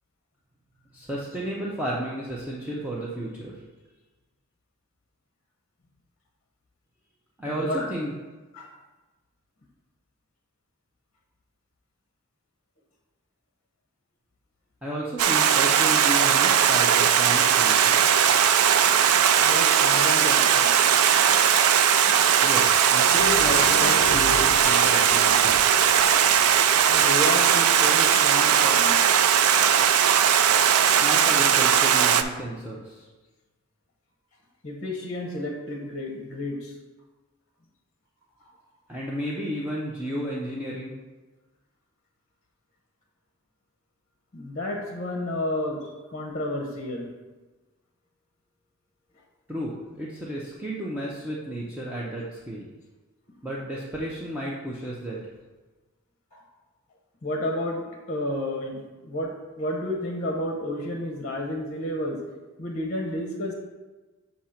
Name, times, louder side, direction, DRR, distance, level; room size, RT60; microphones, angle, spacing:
voice 1, 0.9-3.5 7.4-8.1 14.8-18.2 22.4-25.6 30.8-33.0 38.9-41.0 49.5-52.7 53.4-55.2, right 1 dB, 5° right, -6 dB, 0.6 m, -33 dB
voice 2, 7.4-7.9 8.5-8.7 19.4-20.7 26.9-29.0 34.6-36.7 38.4-38.5 44.3-47.1 56.3-56.4 57.2-62.2 62.6-63.5, left 1 dB, 35° left, 0 dB, 0.8 m, -31 dB
Stream, 15.2-32.2, right 8 dB, 80° right, 0.4 m, -19 dB
sound 1, 23.2-27.7 28.0-28.1, left 5 dB, 65° left, 0.4 m, -33 dB
7.1 x 2.8 x 5.7 m, 1.2 s
head